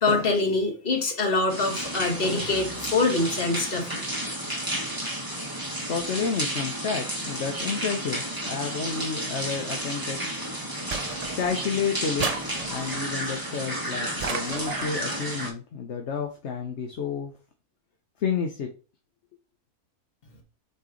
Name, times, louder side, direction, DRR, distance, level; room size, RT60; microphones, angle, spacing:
voice 1, 0.0-4.0, left 3 dB, 40° left, 2 dB, 1.6 m, -24 dB
sound 1, 1.5-15.5, right 1 dB, 15° right, 1.2 m, -32 dB
voice 2, 5.9-10.2 11.4-12.3 12.7-17.3 18.2-18.7, left 6 dB, 55° left, 3 dB, 1.1 m, -30 dB
sound 2, 10.9-11.7 12.2-13.1 14.2-15.0, right 4 dB, 55° right, 0.4 m, -33 dB
8.3 x 3.1 x 3.8 m, 0.35 s
omnidirectional pair, 1.6 m